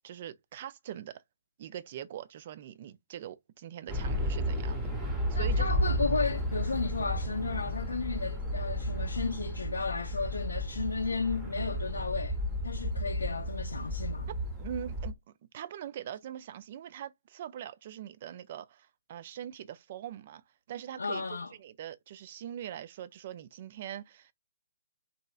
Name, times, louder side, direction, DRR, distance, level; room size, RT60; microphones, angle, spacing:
voice 1, 0.0-1.2 1.6-4.9 5.3-5.7 14.6-15.2 15.5-20.4 20.7-21.3 21.6-24.3, right 10 dB, 40° right, 0.3 m, -42 dB
sound 1, 3.9-15.1, equal, 10° right, 0.7 m, -33 dB
voice 2, 5.3-12.4 12.6-14.3 21.0-21.5, left 4 dB, 70° left, 0.5 m, -33 dB
2.7 x 2.2 x 2.3 m
figure-of-eight pair, 130°, 0 cm